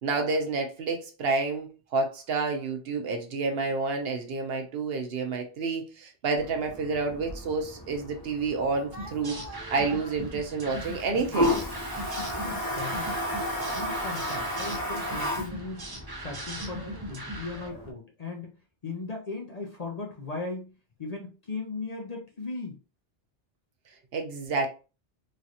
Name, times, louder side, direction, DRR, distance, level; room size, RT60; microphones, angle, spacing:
voice 1, 0.0-11.6 24.1-24.7, right 4 dB, 65° right, 0.8 m, -29 dB
Toilet flush, 6.4-17.9, equal, 20° left, 1.0 m, -34 dB
sound 1, 9.0-17.7, right 1 dB, 30° right, 0.5 m, -40 dB
voice 2, 12.0-13.2 13.7-15.9 16.2-18.6 18.8-22.8, left 3 dB, 45° left, 0.6 m, -38 dB
3.1 x 2.7 x 2.4 m
omnidirectional pair, 1.2 m